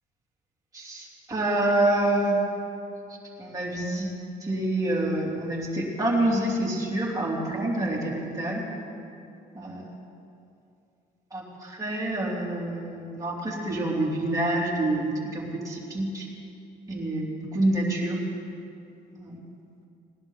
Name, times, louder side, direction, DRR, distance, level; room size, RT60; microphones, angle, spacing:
voice 1, 0.7-2.4 3.4-4.1 4.4-8.6 9.6-9.8 11.3-16.3 16.9-18.2 19.2-19.4, right 1 dB, 20° right, -4 dB, 3.3 m, -27 dB
20.0 x 11.0 x 3.7 m, 2.6 s
cardioid pair, 110°, 17 cm